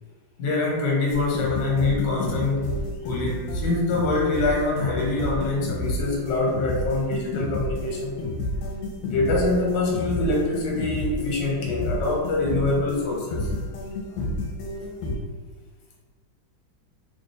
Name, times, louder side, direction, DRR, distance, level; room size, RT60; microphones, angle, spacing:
voice 1, 0.4-2.7 3.0-8.2 9.0-13.5, left 2 dB, 65° left, -2 dB, 1.5 m, -25 dB
sound 1, 1.1-15.2, left 1 dB, 85° left, 1.4 m, -30 dB
3.3 x 2.1 x 4.0 m, 1.4 s
omnidirectional pair, 2.2 m